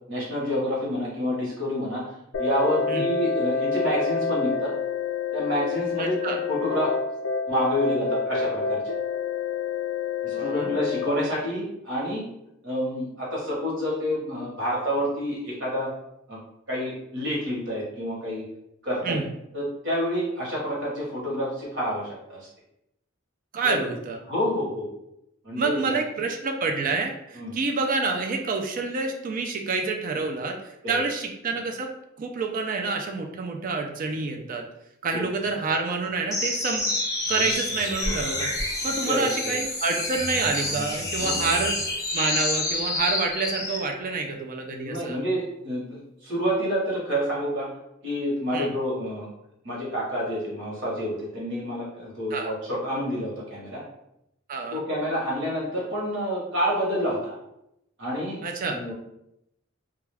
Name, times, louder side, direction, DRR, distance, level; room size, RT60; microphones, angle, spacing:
voice 1, 0.1-2.0 2.4-4.7 5.3-6.9 7.5-8.8 10.2-12.2 12.6-15.9 16.3-16.4 16.7-18.4 18.8-19.2 19.5-22.5 23.6-23.8 24.3-24.9 25.4-26.0 27.3-27.5 35.1-35.2 39.0-39.5 41.1-41.4 44.7-47.7 48.0-49.3 49.6-53.8 54.7-57.4 58.0-58.4 58.7-58.9, equal, 65° right, -5 dB, 1.1 m, -28 dB
sound 1, 2.3-11.1, left 5 dB, 60° left, 0.3 m, -28 dB
voice 2, 6.0-6.4 10.3-10.7 19.0-19.3 23.5-24.2 25.6-30.6 30.9-31.9 32.2-34.7 35.0-36.9 37.3-41.8 42.1-45.2 48.5-48.7 52.3-52.5 54.5-54.8 58.4-58.8, right 4 dB, 40° right, 3 dB, 0.4 m, -28 dB
sound 2, 36.3-43.9, left 2 dB, 15° left, 0.6 m, -28 dB
2.3 x 2.3 x 3.3 m, 0.82 s
head